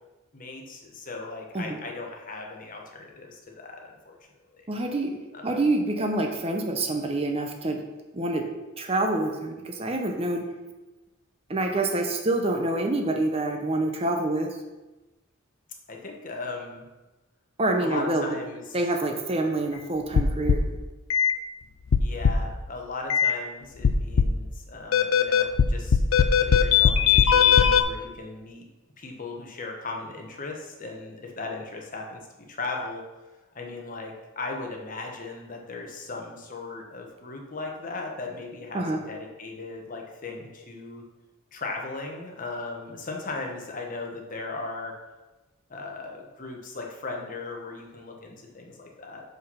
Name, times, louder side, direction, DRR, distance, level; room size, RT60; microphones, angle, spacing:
voice 1, 0.3-4.2 4.5-4.7 5.3-5.6 15.9-16.8 17.8-18.8 22.0-28.7 29.0-32.2 32.5-33.0 33.5-41.0 41.5-45.0 45.7-49.2, left 3 dB, 40° left, 1 dB, 1.2 m, -37 dB
voice 2, 4.7-5.2 5.4-7.8 8.1-8.4 8.8-10.5 11.5-14.6 17.6-18.2 18.7-20.6 38.7-39.0, right 2 dB, 30° right, 3 dB, 0.7 m, -26 dB
sound 1, 20.2-20.7 21.1-21.3 21.9-22.5 23.1-23.3 23.8-24.4 24.9-27.8, left 7 dB, 70° left, 0.4 m, -19 dB
6.2 x 5.4 x 5.6 m, 1.1 s
head